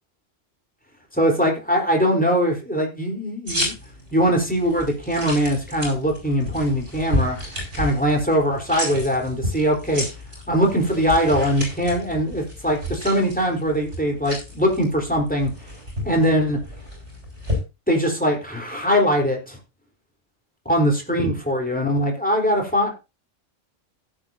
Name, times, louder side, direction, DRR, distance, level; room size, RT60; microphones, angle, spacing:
voice 1, 1.1-3.7 4.1-7.4 7.7-10.1 10.5-15.5 16.0-16.6 17.9-19.6 20.7-22.9, equal, 5° left, 1 dB, 4.0 m, -21 dB
sound 1, 3.5-17.6, left 1 dB, 65° right, 6.9 m, -32 dB
16.5 x 9.0 x 2.8 m, 0.27 s
omnidirectional pair, 1.3 m